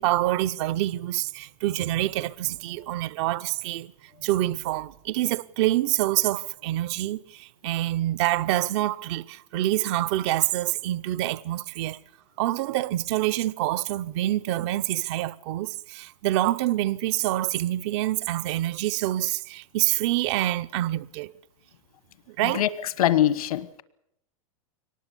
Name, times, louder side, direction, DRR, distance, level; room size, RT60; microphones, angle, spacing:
voice 1, 0.0-3.9 4.2-12.0 12.4-21.3 22.3-22.6, right 15 dB, 50° right, 0.7 m, -26 dB
voice 2, 23.0-23.8, left 12 dB, 85° left, 1.2 m, -23 dB
23.0 x 19.0 x 6.9 m
supercardioid pair, 140°, 18 cm